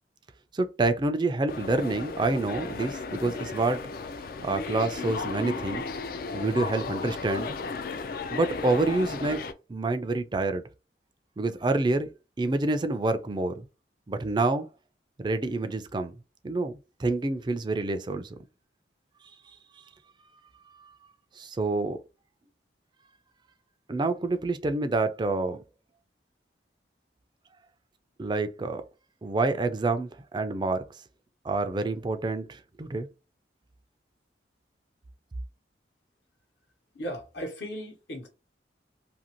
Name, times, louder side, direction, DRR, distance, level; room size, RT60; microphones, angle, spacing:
voice 1, 0.5-3.9 4.4-5.9 6.3-7.6 8.3-9.4 9.7-10.6 11.4-12.1 12.4-13.7 14.1-14.7 15.2-16.1 16.4-16.7 17.0-18.4 20.8-20.9 21.4-22.0 23.9-25.6 28.2-28.8 29.2-30.8 31.4-33.1, right 2 dB, 25° right, 0.3 m, -27 dB
sound 1, 1.5-9.5, left 4 dB, 55° left, 0.4 m, -35 dB
voice 2, 36.9-38.3, equal, 70° left, 1.0 m, -36 dB
2.7 x 2.6 x 2.9 m
head